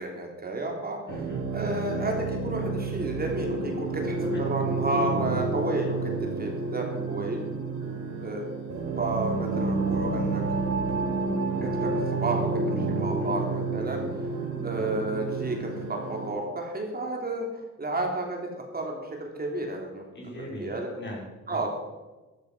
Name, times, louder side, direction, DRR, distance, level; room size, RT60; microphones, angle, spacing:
voice 1, 0.0-1.0 1.5-7.4 8.2-8.5 9.0-10.4 11.6-14.0 14.6-17.5 17.8-20.0 20.6-20.9 21.5-21.7, right 2 dB, 30° right, 1 dB, 3.4 m, -31 dB
voice 2, 1.1-1.5 4.2-4.4 5.0-5.2 13.2-13.5 14.8-15.2 20.1-21.7, equal, 35° left, -2 dB, 5.7 m, -40 dB
sound 1, 1.1-16.3, right 3 dB, 65° right, 5.2 m, -30 dB
13.5 x 13.0 x 5.6 m, 1.2 s
cardioid pair, 90°, 30 cm